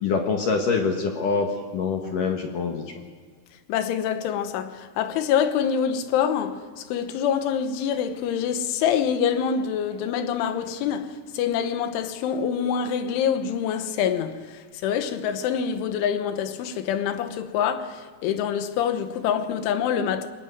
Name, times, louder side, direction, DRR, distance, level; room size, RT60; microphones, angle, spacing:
voice 1, 0.0-2.8, left 4 dB, 60° left, 2.4 m, -25 dB
voice 2, 3.7-20.3, left 8 dB, 85° left, 3.7 m, -26 dB
24.0 x 20.5 x 9.5 m
omnidirectional pair, 5.4 m